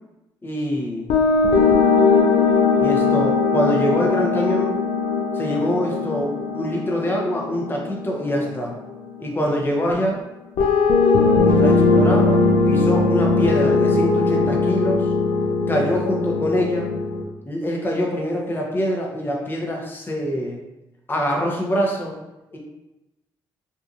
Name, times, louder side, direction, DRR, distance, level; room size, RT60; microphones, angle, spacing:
voice 1, 0.4-1.1 2.8-4.7 5.3-8.7 9.2-10.2 11.4-12.4 12.7-15.1 15.7-16.9 17.5-20.6 21.1-22.1 22.5-22.6, equal, 25° left, -1 dB, 0.8 m, -24 dB
sound 1, 1.1-9.2 10.6-17.2, left 4 dB, 75° left, 0.4 m, -19 dB
2.7 x 2.5 x 2.4 m, 0.96 s
supercardioid pair, 60°, 9 cm